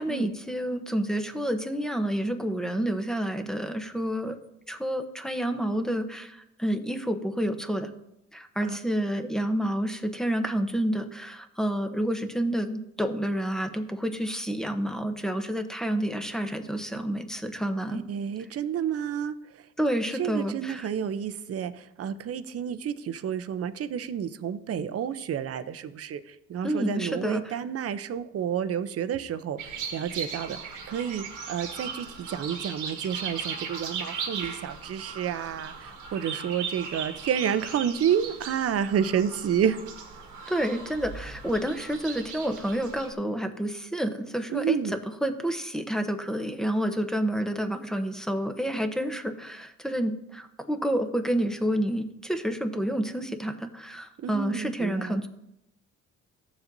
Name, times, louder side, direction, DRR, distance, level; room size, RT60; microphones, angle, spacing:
voice 1, 0.0-4.4 4.7-7.9 8.3-18.0 19.8-20.9 26.6-27.5 40.5-55.3, right 1 dB, ahead, 7 dB, 0.8 m, -29 dB
voice 2, 17.9-19.6 20.2-30.6 30.9-39.8 44.5-45.0 54.2-55.2, right 8 dB, 50° right, 13 dB, 0.6 m, -30 dB
sound 1, 29.6-43.1, right 6 dB, 90° right, 1.5 m, -38 dB
14.5 x 7.1 x 2.6 m, 0.86 s
cardioid pair, 90°, 30 cm